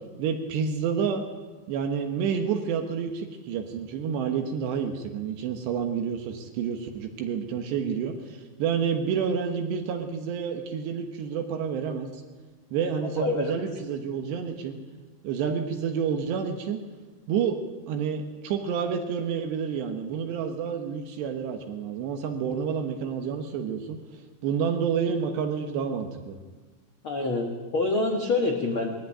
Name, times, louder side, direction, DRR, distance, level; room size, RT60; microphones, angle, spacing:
voice 1, 0.2-1.2 1.7-12.2 12.7-14.8 15.2-16.8 17.3-17.6 17.9-24.0 24.4-26.4, right 7 dB, 75° right, 4 dB, 3.3 m, -29 dB
voice 2, 13.2-13.5 27.0-28.9, left 3 dB, 80° left, 2 dB, 1.1 m, -26 dB
19.5 x 14.5 x 9.8 m, 1.3 s
omnidirectional pair, 5.1 m